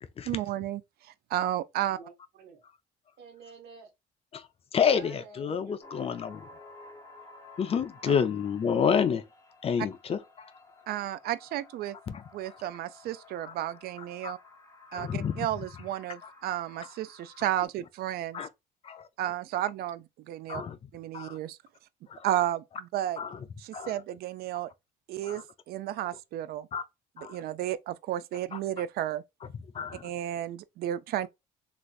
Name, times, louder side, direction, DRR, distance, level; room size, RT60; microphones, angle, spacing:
voice 1, 0.3-2.0 8.1-8.2 10.9-12.0 12.3-14.4 14.9-18.4 19.2-20.6 20.9-21.6 22.2-23.2 23.6-24.7 25.1-26.7 27.3-29.2 30.0-31.3, right 12 dB, 65° right, 0.4 m, -33 dB
voice 2, 1.9-2.6 3.2-3.9 4.8-5.8, right 5 dB, 90° right, 1.3 m, -50 dB
voice 3, 4.3-6.5 7.6-9.2 9.6-10.5 12.1-12.2 13.4-13.5 14.2-14.3 14.9-15.5 16.2-16.3 16.8-16.9 18.3-18.5 18.8-19.1 20.5-20.8 21.1-21.4 22.1-22.3 23.2-23.4 23.7-24.0 25.2-25.4 26.0-26.1 26.7-26.8 27.2-27.4 28.5-28.6 29.5-30.1, left 7 dB, 35° left, 0.4 m, -29 dB
sound 1, 5.8-17.7, left 3 dB, 20° left, 0.8 m, -53 dB
3.3 x 2.5 x 2.3 m
cardioid pair, 110°, 17 cm